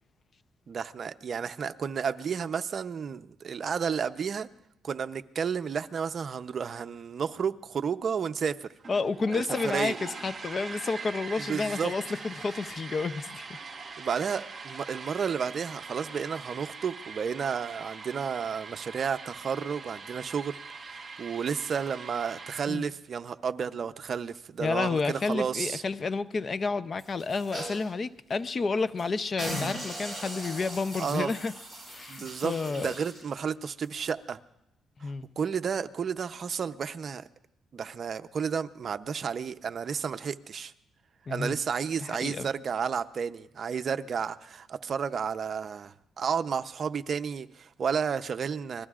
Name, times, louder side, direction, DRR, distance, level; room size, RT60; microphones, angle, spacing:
voice 1, 0.7-4.5 4.8-8.7 9.3-10.0 11.5-11.9 14.0-20.6 20.9-25.8 31.0-31.3 32.1-34.4 35.0-37.2 37.7-40.7 41.3-48.9, right 6 dB, 50° right, 0.7 m, -32 dB
sound 1, 8.8-22.6, right 4 dB, 35° right, 3.2 m, -42 dB
voice 2, 8.9-13.5 22.7-22.9 24.6-31.5 31.9-33.0 35.0-35.3 41.3-41.6 42.0-42.5, left 4 dB, 40° left, 0.6 m, -30 dB
sound 2, 27.0-27.9 28.3-28.4 28.8-29.0 29.4-33.3 33.8-33.9, right 1 dB, 10° left, 7.5 m, -39 dB
28.0 x 21.0 x 2.5 m
cardioid pair, 90°, 0 cm